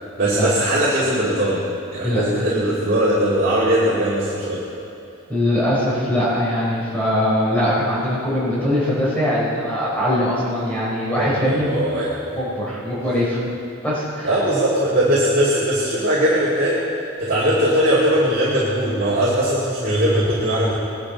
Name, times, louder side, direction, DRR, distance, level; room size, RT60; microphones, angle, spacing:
voice 1, 0.2-1.6 1.9-4.6 8.4-8.6 11.1-12.4 14.2-16.8 17.2-20.7, right 1 dB, 40° right, -8 dB, 2.4 m, -20 dB
voice 2, 5.3-11.7 12.4-13.4 13.8-14.3, left 1 dB, 5° left, -8 dB, 3.9 m, -21 dB
20.0 x 11.0 x 4.1 m, 2.6 s
head